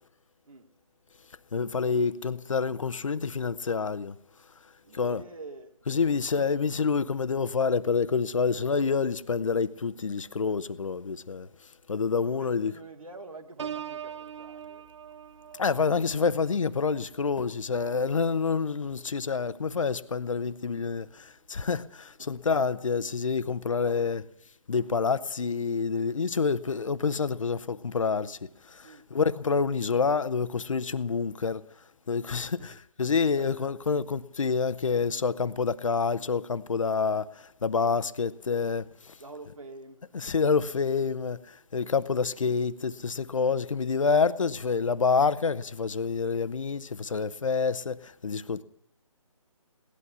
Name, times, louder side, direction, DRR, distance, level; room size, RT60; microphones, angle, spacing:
voice 1, 1.5-4.2 4.9-5.2 5.9-11.5 11.9-12.7 15.5-24.2 24.7-28.4 28.6-31.6 32.1-39.2 40.1-48.6, left 5 dB, 65° left, 0.9 m, -27 dB
voice 2, 4.8-6.3 12.1-14.9 22.2-22.5 23.8-24.2 28.8-29.1 32.4-32.8 33.2-33.7 39.2-40.7, right 3 dB, 75° right, 2.2 m, -47 dB
Piano, 13.6-19.2 19.7-20.0, right 8 dB, 55° right, 0.7 m, -43 dB
18.0 x 11.5 x 6.9 m
figure-of-eight pair, 155°, 18 cm